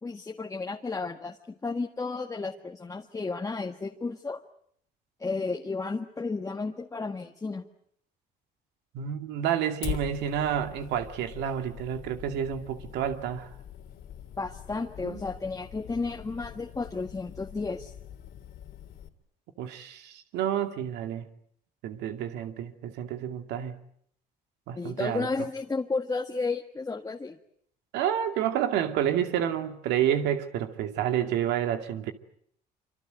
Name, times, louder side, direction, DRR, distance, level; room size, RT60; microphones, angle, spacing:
voice 1, 0.0-4.4 5.2-7.6 14.4-17.9 24.7-27.4, left 3 dB, 20° left, 1.6 m, -33 dB
voice 2, 8.9-13.5 15.0-15.2 19.6-21.3 21.8-23.7 24.7-25.3 27.9-32.1, right 10 dB, 85° right, 2.4 m, -29 dB
Fire, 9.8-19.1, left 9 dB, 65° left, 3.1 m, -42 dB
26.0 x 26.0 x 8.0 m
cardioid pair, 110°, 17 cm